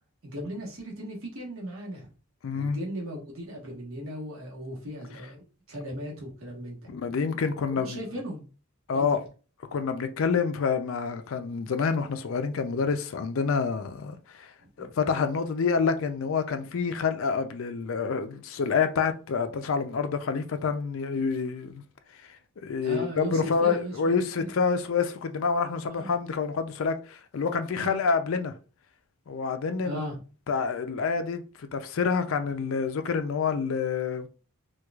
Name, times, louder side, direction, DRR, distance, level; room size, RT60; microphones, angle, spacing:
voice 1, 0.2-2.1 2.5-7.0 7.7-8.4 8.9-9.1 14.8-14.9 22.8-24.5 25.9-26.1 27.7-28.0 29.8-30.2, equal, 70° right, 1.2 m, -37 dB
voice 2, 2.4-2.8 6.9-8.0 8.9-9.2 9.7-14.5 14.8-21.8 22.3-28.5 29.3-30.0 30.5-34.3, left 5 dB, 65° left, 0.4 m, -27 dB
4.5 x 2.3 x 2.3 m
head